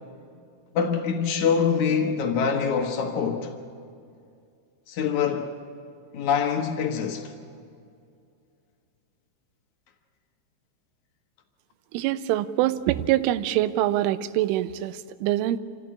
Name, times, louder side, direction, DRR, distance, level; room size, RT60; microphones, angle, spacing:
voice 1, 0.7-3.5 4.9-5.5 6.1-7.3, left 6 dB, 75° left, 1.7 m, -24 dB
voice 2, 11.9-15.6, right 14 dB, 90° right, 3.2 m, -24 dB
27.0 x 15.5 x 8.7 m
omnidirectional pair, 5.5 m